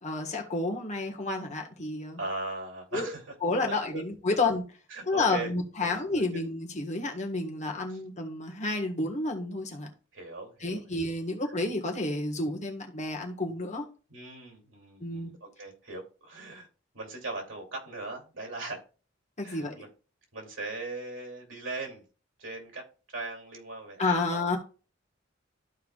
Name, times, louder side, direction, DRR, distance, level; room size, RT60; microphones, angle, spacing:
voice 1, 0.0-2.2 2.9-3.1 3.4-4.6 5.1-9.9 10.6-13.8 15.0-15.3 19.4-19.7 24.0-24.6, left 2 dB, 40° left, 1.6 m, -30 dB
voice 2, 2.2-3.2 3.7-4.0 4.3-4.4 4.9-5.5 5.8-6.4 7.9-8.0 10.1-10.8 11.4-11.5 14.1-16.7 16.9-18.8 19.4-19.9 20.3-22.0 22.4-24.6, right 2 dB, 85° right, 2.8 m, -39 dB
13.5 x 4.6 x 2.4 m
head